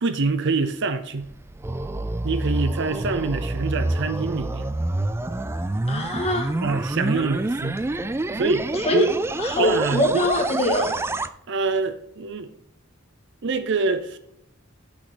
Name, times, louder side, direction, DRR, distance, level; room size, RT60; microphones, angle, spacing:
voice 1, 0.0-1.3 2.2-4.7 6.6-7.8 8.4-9.1 9.6-10.3 11.5-12.5 13.4-14.2, right 4 dB, 60° right, 0.7 m, -25 dB
sound 1, 1.2-11.3, right 2 dB, 10° right, 0.3 m, -27 dB
voice 2, 5.9-6.5 8.7-9.1 9.4-11.0, left 1 dB, 30° left, 1.7 m, -23 dB
6.4 x 6.0 x 5.1 m
head